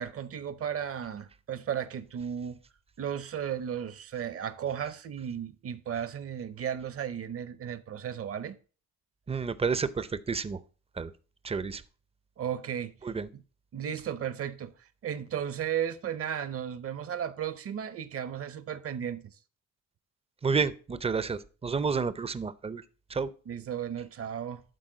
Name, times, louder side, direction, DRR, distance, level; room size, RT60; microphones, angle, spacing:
voice 1, 0.0-2.6 3.0-8.5 12.4-12.9 13.3-13.4 13.7-14.7 15.0-19.3 23.5-24.6, right 9 dB, 50° right, 0.7 m, -34 dB
voice 2, 9.3-10.6 11.0-11.1 11.4-11.8 13.0-13.3 20.4-22.8 23.1-23.3, right 5 dB, 20° right, 0.5 m, -30 dB
11.5 x 4.2 x 3.9 m
cardioid pair, 90°, 30 cm